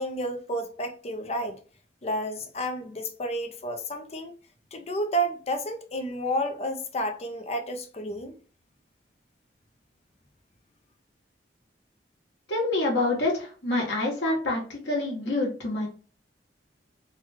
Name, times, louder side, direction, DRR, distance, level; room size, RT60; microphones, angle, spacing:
voice 1, 0.0-1.6 2.0-4.3 4.7-8.4, equal, 35° left, 0.5 m, -31 dB
voice 2, 12.5-15.9, left 2 dB, 80° left, 1.3 m, -27 dB
3.3 x 2.2 x 3.4 m
head